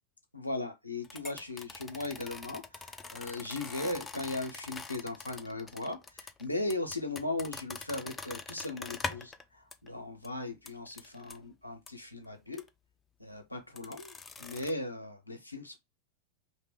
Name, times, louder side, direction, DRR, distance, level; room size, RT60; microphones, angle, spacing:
voice 1, 0.3-12.6 13.2-15.8, left 2 dB, 85° left, 0.6 m, -38 dB
sound 1, 1.0-9.4 9.7-9.9 10.2-10.3 10.7-11.4 11.9-12.0 12.5-12.7 13.8-14.7, left 4 dB, 15° left, 0.4 m, -43 dB
2.7 x 2.1 x 3.6 m
figure-of-eight pair, 90°, 0 cm